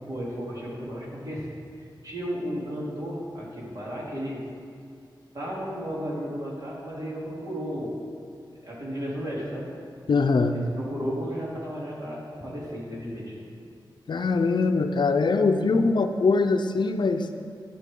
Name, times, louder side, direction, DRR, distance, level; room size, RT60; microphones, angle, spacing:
voice 1, 0.0-4.4 5.3-8.0 8.6-9.7 10.5-13.4, equal, 50° right, -6 dB, 3.3 m, -34 dB
voice 2, 10.1-10.6 14.1-17.3, left 4 dB, 65° left, 7 dB, 0.6 m, -22 dB
12.0 x 11.5 x 3.8 m, 2.2 s
wide cardioid pair, 120°, 8 cm